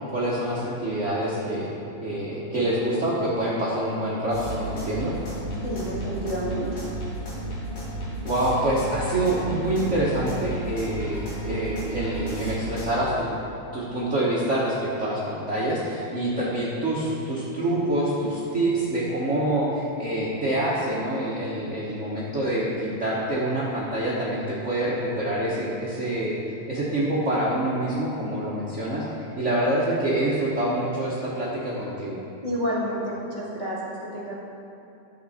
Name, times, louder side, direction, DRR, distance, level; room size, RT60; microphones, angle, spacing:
voice 1, 0.1-1.7 2.0-5.1 8.2-13.4 13.7-26.4 26.7-29.0 29.4-32.2, right 1 dB, 65° right, -8 dB, 0.7 m, -26 dB
sound 1, 4.3-12.9, right 1 dB, 85° left, 4.1 m, -32 dB
voice 2, 5.6-6.7 32.4-34.3, equal, 15° left, -8 dB, 2.0 m, -30 dB
12.0 x 7.6 x 4.2 m, 2.8 s
omnidirectional pair, 3.3 m